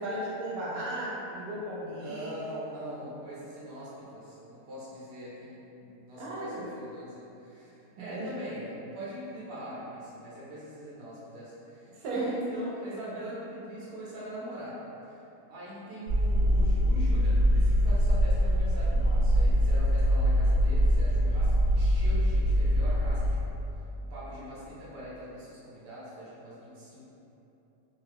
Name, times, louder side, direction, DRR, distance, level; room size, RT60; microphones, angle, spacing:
voice 1, 0.0-2.3 6.2-6.7 8.1-8.3 12.0-12.3, right 1 dB, 80° right, -6 dB, 1.1 m, -35 dB
voice 2, 1.9-14.8 15.1-15.2 15.5-23.6 24.1-27.0, equal, 50° right, -8 dB, 1.0 m, -42 dB
sound 1, 16.1-23.3, equal, 65° left, 1.5 m, -23 dB
3.2 x 2.3 x 3.3 m, 2.9 s
omnidirectional pair, 1.6 m